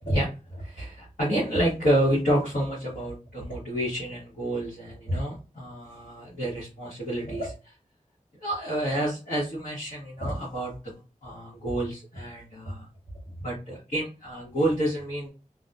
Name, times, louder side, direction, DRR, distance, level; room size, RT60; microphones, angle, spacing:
voice 1, 0.0-7.7 8.4-12.9 13.4-15.3, right 1 dB, 75° left, -6 dB, 1.1 m, -29 dB
2.6 x 2.2 x 2.2 m, 0.32 s
wide cardioid pair, 50°, 14 cm